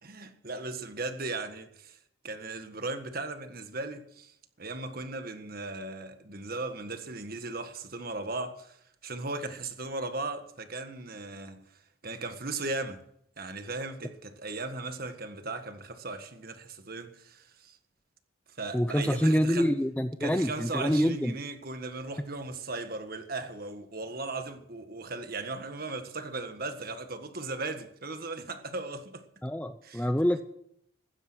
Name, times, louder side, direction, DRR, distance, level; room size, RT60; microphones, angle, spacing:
voice 1, 0.0-2.0 2.2-8.8 9.0-11.6 12.0-13.0 13.4-17.8 18.6-19.7 20.2-29.2 29.8-30.1, right 3 dB, 45° right, 1.6 m, -37 dB
voice 2, 18.7-21.3 29.4-30.4, equal, 5° left, 0.5 m, -26 dB
16.0 x 12.0 x 6.2 m
head